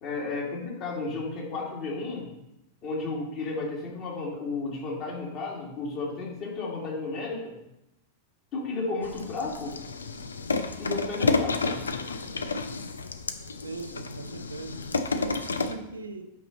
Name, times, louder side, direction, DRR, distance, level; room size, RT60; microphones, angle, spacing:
voice 1, 0.0-2.3 2.8-7.5 8.5-9.7 10.8-11.8, left 3 dB, 40° left, -2 dB, 2.5 m, -33 dB
sound 1, 9.0-15.7, left 3 dB, 75° left, 0.5 m, -30 dB
voice 2, 13.6-16.3, right 3 dB, 80° right, 7 dB, 0.6 m, -39 dB
8.7 x 5.4 x 4.0 m, 0.88 s
figure-of-eight pair, 90°, 0 cm